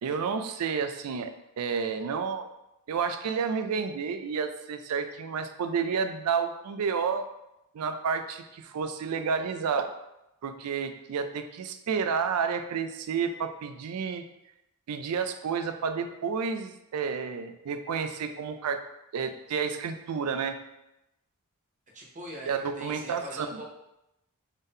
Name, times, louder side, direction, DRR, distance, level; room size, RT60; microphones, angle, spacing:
voice 1, 0.0-2.5 2.9-7.3 7.7-9.9 10.4-14.2 14.9-18.8 19.1-20.6 22.5-23.6, right 6 dB, 85° right, 8 dB, 0.4 m, -30 dB
voice 2, 21.9-23.6, equal, 35° right, -2 dB, 0.7 m, -42 dB
3.7 x 2.7 x 3.5 m, 0.88 s
head